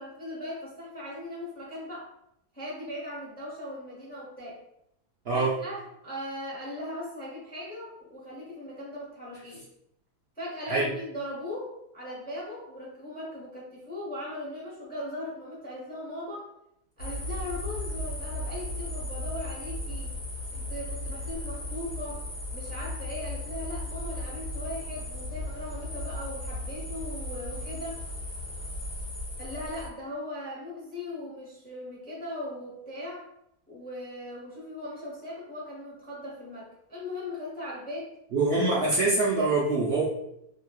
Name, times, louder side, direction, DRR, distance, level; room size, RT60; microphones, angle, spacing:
voice 1, 0.0-2.1 2.5-4.6 5.3-9.6 10.4-16.5 17.0-20.1 20.5-22.3 22.5-28.0 29.4-33.3 33.7-38.1, left 1 dB, 10° left, -5 dB, 0.4 m, -39 dB
sound 1, 17.0-29.9, left 1 dB, 55° left, 1.1 m, -36 dB
voice 2, 38.3-40.0, right 3 dB, 75° right, -4 dB, 0.5 m, -24 dB
3.0 x 2.7 x 2.2 m, 0.77 s
omnidirectional pair, 1.7 m